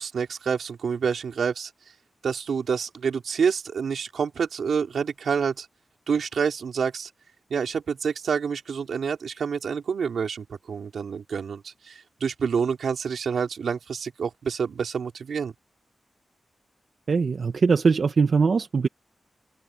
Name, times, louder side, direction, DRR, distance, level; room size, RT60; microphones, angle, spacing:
voice 1, 0.0-1.7 2.2-5.7 6.1-7.1 7.5-15.5, right 6 dB, 85° right, 3.5 m, -28 dB
voice 2, 17.1-18.9, right 5 dB, 55° right, 1.0 m, -21 dB
wide cardioid pair, 155°, 0 cm